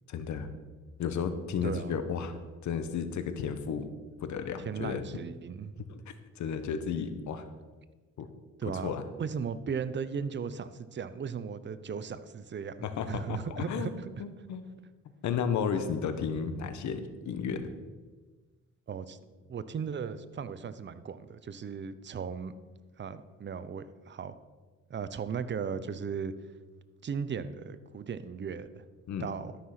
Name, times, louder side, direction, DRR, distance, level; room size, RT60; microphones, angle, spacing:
voice 1, 0.1-0.5 1.0-2.3 2.6-3.9 4.2-5.0 6.4-7.4 8.2-8.3 8.8-9.0 12.8-13.9 14.2-14.6 15.2-17.7 29.1-29.3, left 6 dB, 70° left, 9 dB, 1.1 m, -33 dB
voice 2, 1.6-2.0 4.6-5.9 8.6-14.2 18.9-19.2 19.5-22.5 23.0-24.4 24.9-26.3 27.0-28.8 29.2-29.5, right 6 dB, 40° right, 13 dB, 0.7 m, -37 dB
12.5 x 5.7 x 5.9 m, 1.3 s
cardioid pair, 90°, 30 cm